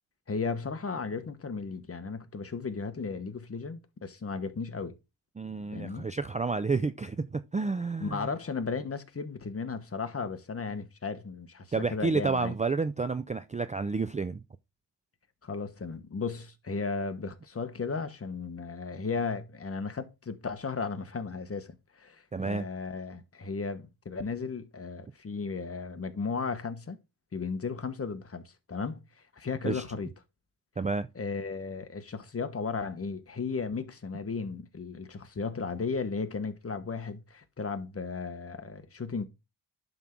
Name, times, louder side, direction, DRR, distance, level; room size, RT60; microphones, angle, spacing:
voice 1, 0.3-5.0 5.7-6.1 8.0-12.5 15.4-27.0 27.3-29.0 29.3-30.1 31.1-39.2, left 4 dB, 30° left, 1.3 m, -35 dB
voice 2, 5.4-8.2 11.7-14.4 22.3-22.7 29.6-29.8 30.8-31.1, right 4 dB, 20° right, 0.4 m, -30 dB
11.0 x 3.7 x 6.0 m
cardioid pair, 95°, 43 cm